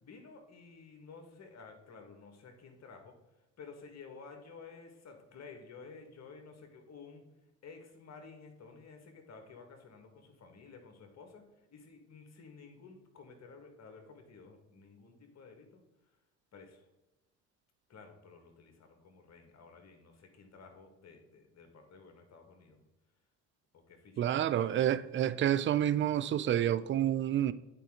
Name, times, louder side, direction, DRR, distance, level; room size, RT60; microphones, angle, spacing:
voice 1, 0.0-3.2 3.6-7.2 7.6-15.8 16.5-16.8 17.9-22.8 23.7-24.9, left 4 dB, 45° left, 1.8 m, -53 dB
voice 2, 24.2-27.5, right 11 dB, 35° right, 0.4 m, -29 dB
8.9 x 4.4 x 3.8 m
hypercardioid pair, 65°, 37 cm